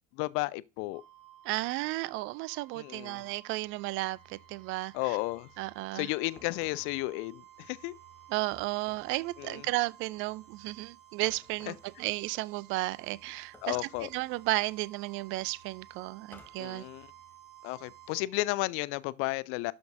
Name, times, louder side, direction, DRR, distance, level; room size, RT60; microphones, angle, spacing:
voice 1, 0.1-1.0 2.7-3.2 4.9-5.5 5.9-7.9 9.4-9.6 11.7-11.8 13.6-14.1 16.6-17.1 17.6-19.7, left 21 dB, 35° left, 0.4 m, -33 dB
sound 1, 0.9-18.2, right 10 dB, 70° right, 2.9 m, -56 dB
voice 2, 1.4-5.2 5.6-6.1 8.3-13.8 14.1-16.9, right 20 dB, 35° right, 0.4 m, -33 dB
sound 2, 6.4-7.0 8.5-9.2 11.2-11.9 13.5-14.3 16.3-16.7, left 2 dB, 5° left, 1.5 m, -56 dB
11.5 x 5.2 x 2.6 m
figure-of-eight pair, 75°, 38 cm